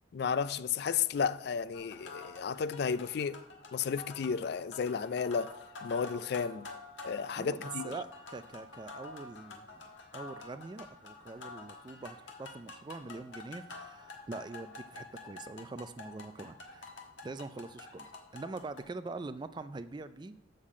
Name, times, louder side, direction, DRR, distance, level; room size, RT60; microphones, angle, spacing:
voice 1, 0.1-3.4 3.7-5.5 5.8-6.7 7.0-7.8, left 6 dB, 55° left, 0.3 m, -33 dB
sound 1, 1.7-18.8, left 3 dB, 70° left, 1.3 m, -48 dB
voice 2, 7.4-9.8 10.1-16.9 17.2-20.4, right 3 dB, 25° right, 0.3 m, -44 dB
6.6 x 5.6 x 7.3 m
head